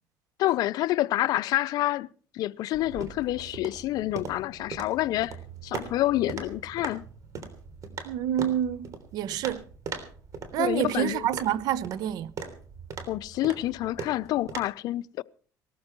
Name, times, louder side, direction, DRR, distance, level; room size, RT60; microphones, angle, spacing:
voice 1, 0.4-2.1 2.3-5.4 5.6-7.0 10.6-11.3 13.1-15.2, left 15 dB, 70° left, 0.6 m, -28 dB
High Heels, 2.7-14.6, right 5 dB, 55° right, 3.4 m, -40 dB
voice 2, 8.0-9.6 10.5-12.3, right 10 dB, 70° right, 0.8 m, -28 dB
18.5 x 13.5 x 4.5 m
cardioid pair, 100°, 7 cm